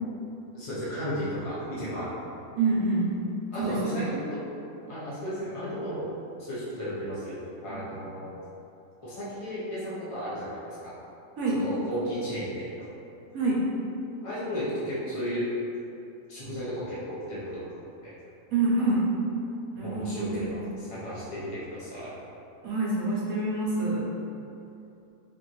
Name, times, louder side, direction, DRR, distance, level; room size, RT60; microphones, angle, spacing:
voice 1, 0.5-2.1 3.5-4.4 4.9-6.1 6.4-8.3 9.0-10.9 11.6-12.7 14.2-15.5 16.3-17.6 18.0-18.1 19.8-22.1, equal, 50° left, -10 dB, 0.4 m, -34 dB
voice 2, 2.6-3.1 3.6-4.1 11.4-11.6 13.3-13.7 18.5-19.1 19.7-20.5 22.6-24.0, right 2 dB, 70° right, -5 dB, 1.1 m, -26 dB
4.1 x 2.6 x 3.0 m, 2.8 s
omnidirectional pair, 1.6 m